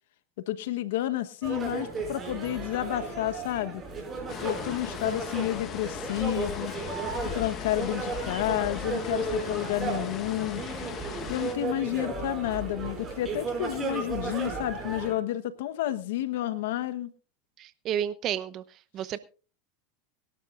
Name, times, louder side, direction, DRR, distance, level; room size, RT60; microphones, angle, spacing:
voice 1, 0.5-3.8 4.4-6.7 7.2-10.6 11.3-17.1, left 14 dB, 75° left, 11 dB, 1.1 m, -30 dB
sound 1, 1.4-15.1, right 4 dB, 25° right, 5.8 m, -35 dB
sound 2, 4.3-11.6, left 9 dB, 40° left, 1.2 m, -39 dB
voice 2, 17.6-18.6 18.9-19.2, right 10 dB, 45° right, 14 dB, 0.8 m, -31 dB
24.0 x 12.0 x 2.5 m, 0.37 s
hypercardioid pair, 105°, 0 cm